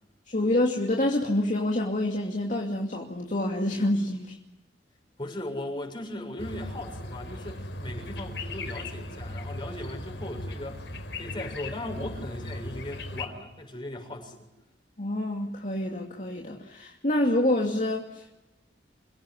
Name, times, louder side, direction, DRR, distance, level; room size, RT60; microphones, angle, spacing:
voice 1, 0.3-4.4 15.0-18.4, left 1 dB, 45° left, 0 dB, 2.6 m, -27 dB
voice 2, 5.2-10.8 11.2-14.5, left 1 dB, 25° left, 2 dB, 7.0 m, -38 dB
sound 1, 6.4-13.2, left 1 dB, 85° left, 4.8 m, -37 dB
28.0 x 17.0 x 9.8 m, 0.95 s
head